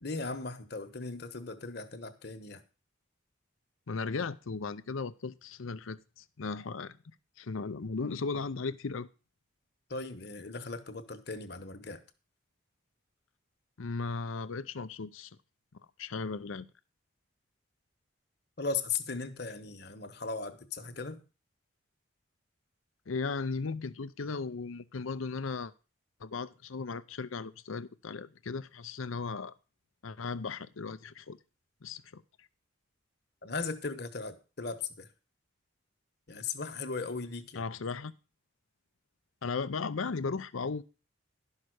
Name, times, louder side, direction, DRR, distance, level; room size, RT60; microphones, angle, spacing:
voice 1, 0.0-2.6 9.9-12.0 18.6-21.2 33.4-35.1 36.3-37.6, left 4 dB, 55° left, 1.2 m, -37 dB
voice 2, 3.9-7.0 7.4-9.1 13.8-15.3 16.0-16.7 23.1-25.7 26.2-29.5 30.0-31.4 31.8-32.2 37.6-38.1 39.4-40.8, left 4 dB, 85° left, 0.6 m, -36 dB
12.0 x 5.7 x 6.4 m
head